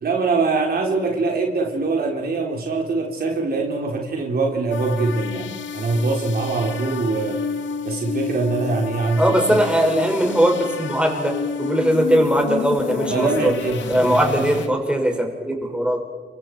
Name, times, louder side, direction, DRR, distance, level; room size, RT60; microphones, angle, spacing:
voice 1, 0.0-7.5 7.8-9.4 9.8-9.9 13.1-13.8 14.2-14.3, right 3 dB, 50° right, 1 dB, 3.5 m, -23 dB
sound 1, 4.7-14.7, left 6 dB, 70° left, 1.9 m, -30 dB
voice 2, 9.2-13.5 13.9-16.0, equal, 5° right, 1 dB, 5.6 m, -20 dB
29.0 x 24.0 x 4.6 m, 1.5 s
cardioid pair, 90°, 20 cm